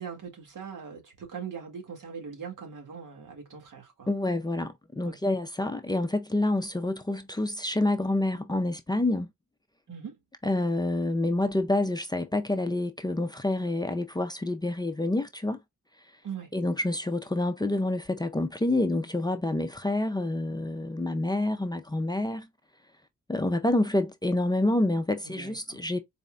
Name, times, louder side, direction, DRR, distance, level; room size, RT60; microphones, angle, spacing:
voice 1, 0.0-4.1 5.0-5.2 9.9-10.2 16.2-16.5 25.2-25.8, right 6 dB, 80° right, 1.8 m, -41 dB
voice 2, 4.1-9.3 10.4-15.6 16.5-22.5 23.3-26.0, left 2 dB, 15° left, 0.4 m, -28 dB
4.2 x 2.2 x 3.7 m
wide cardioid pair, 140°, 31 cm